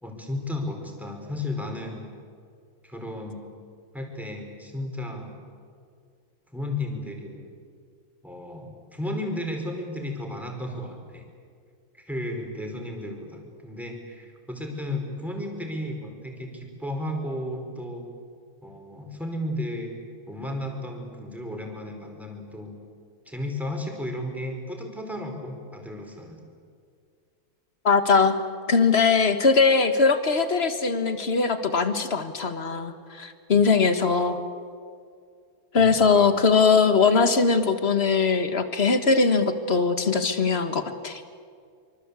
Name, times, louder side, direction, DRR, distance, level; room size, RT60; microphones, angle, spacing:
voice 1, 0.0-2.1 2.8-3.4 3.9-5.4 6.5-7.5 8.2-11.2 11.9-18.1 18.6-20.0 20.3-22.8 23.2-26.4 35.8-36.3, left 1 dB, ahead, 1 dB, 4.7 m, -34 dB
voice 2, 27.8-28.3 28.7-34.4 35.7-41.2, left 4 dB, 35° left, 9 dB, 1.7 m, -21 dB
25.5 x 25.0 x 8.4 m, 2.2 s
omnidirectional pair, 2.2 m